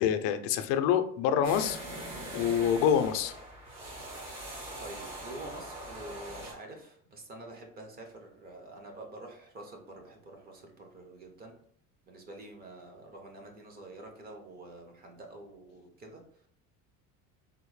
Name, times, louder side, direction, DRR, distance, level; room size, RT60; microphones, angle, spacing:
voice 1, 0.0-1.8 2.3-3.4, left 8 dB, 90° left, 8 dB, 0.5 m, -26 dB
sound 1, 1.4-6.5, right 1 dB, 60° right, 1.4 m, -42 dB
voice 2, 4.8-11.6 12.1-16.5, right 2 dB, 25° right, 3 dB, 0.5 m, -47 dB
3.5 x 2.1 x 3.1 m, 0.62 s
cardioid pair, 160°, 35 cm